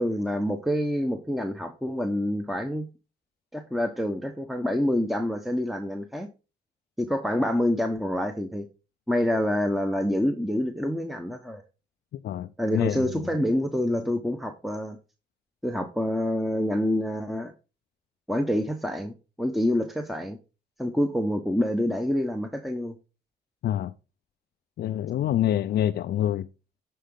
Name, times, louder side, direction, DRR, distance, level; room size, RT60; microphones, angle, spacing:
voice 1, 0.0-2.9 3.5-6.3 7.0-8.7 9.1-11.6 12.6-15.0 15.6-17.5 18.3-20.4 20.8-22.9, left 1 dB, ahead, 1.0 m, -27 dB
voice 2, 12.1-13.3 23.6-23.9 24.8-26.5, left 11 dB, 65° left, 0.5 m, -27 dB
10.0 x 4.7 x 3.8 m
cardioid pair, 85°, 18 cm